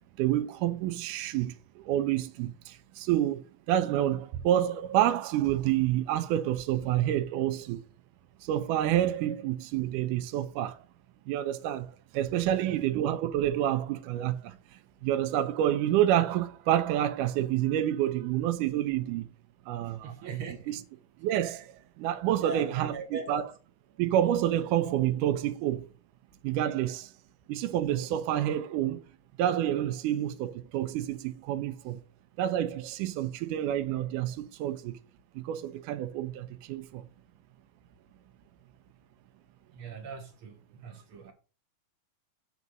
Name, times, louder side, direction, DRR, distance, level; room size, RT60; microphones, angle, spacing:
voice 1, 0.2-7.8 8.4-10.8 11.3-19.3 19.7-20.4 20.7-20.8 21.2-23.4 24.0-25.9 26.4-27.1 27.5-29.0 29.4-32.0 32.4-35.0 35.4-37.0, right 12 dB, 85° right, 2.2 m, -28 dB
voice 2, 12.4-12.8 19.8-20.8 22.4-23.5 39.7-41.3, right 4 dB, 65° right, 1.4 m, -40 dB
8.3 x 4.1 x 6.0 m
omnidirectional pair, 3.6 m